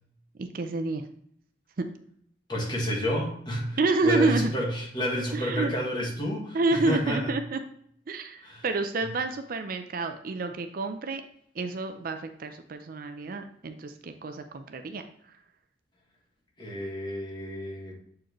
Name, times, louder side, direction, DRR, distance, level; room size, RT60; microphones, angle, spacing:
voice 1, 0.4-1.0 1.8-1.9 3.8-4.5 5.3-5.7 6.5-7.6 8.1-11.2 11.6-15.0, right 3 dB, 50° right, 7 dB, 0.5 m, -29 dB
voice 2, 2.5-7.3 8.4-8.6 16.6-18.0, equal, 25° left, -2 dB, 1.6 m, -30 dB
7.4 x 4.7 x 3.0 m, 0.65 s
head